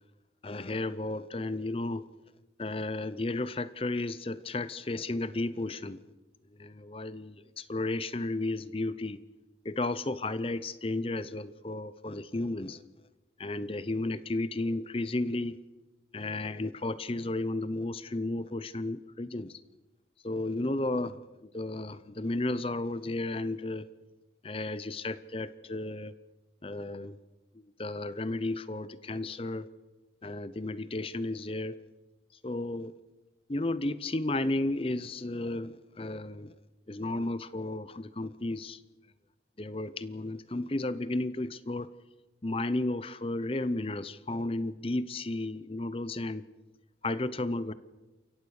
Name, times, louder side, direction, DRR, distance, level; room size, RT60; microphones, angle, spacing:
voice 1, 0.4-2.0 2.6-6.0 6.6-9.2 9.6-12.8 13.4-15.6 16.1-19.6 20.2-23.9 24.4-26.1 26.6-27.2 27.5-29.7 30.2-31.8 32.4-32.9 33.5-36.5 36.9-38.8 39.6-41.9 42.4-46.4 47.0-47.7, left 2 dB, 30° left, 15 dB, 0.7 m, -33 dB
28.0 x 15.5 x 6.5 m, 1.2 s
head